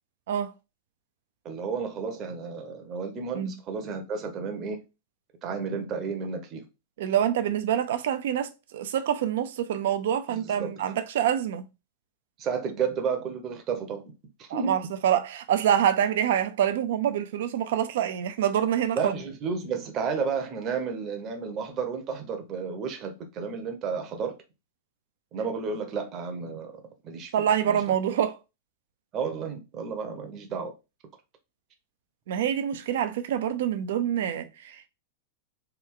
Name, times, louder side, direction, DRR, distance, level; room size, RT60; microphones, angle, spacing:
voice 1, 1.4-4.8 5.4-6.7 10.3-10.7 12.4-14.0 14.4-14.7 19.0-24.4 25.3-26.7 27.0-27.3 27.7-27.9 29.1-30.7, right 5 dB, 35° right, 0.8 m, -32 dB
voice 2, 7.0-11.6 14.5-19.1 27.3-28.4 32.3-34.9, right 9 dB, 70° right, 0.5 m, -26 dB
3.4 x 2.3 x 3.6 m
hypercardioid pair, 105°, 0 cm